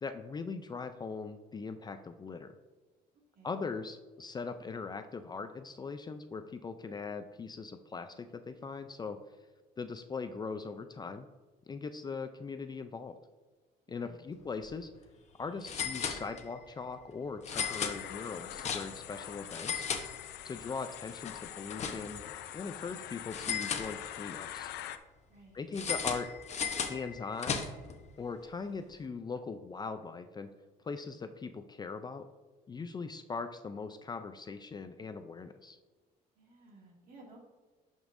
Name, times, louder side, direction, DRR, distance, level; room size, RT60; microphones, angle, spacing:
voice 1, 0.0-2.6 3.4-9.2 9.8-11.3 11.7-13.2 13.9-14.9 15.4-19.9 20.4-22.2 22.5-24.7 25.5-26.3 26.9-27.6 28.2-30.5 30.8-32.3 32.7-35.8, left 4 dB, 25° left, 9 dB, 0.4 m, -40 dB
voice 2, 13.9-14.3 25.3-25.7 36.4-37.4, right 2 dB, 55° right, -1 dB, 2.2 m, -56 dB
sound 1, 14.5-14.7 14.9-15.0 15.6-16.7 17.4-19.1 19.4-20.6 21.0-22.3 23.3-24.4 25.7-28.0, left 6 dB, 40° left, 0.9 m, -36 dB
sound 2, 17.5-25.0, left 12 dB, 80° left, 0.5 m, -44 dB
11.0 x 5.4 x 2.6 m, 1.3 s
cardioid pair, 110°, 17 cm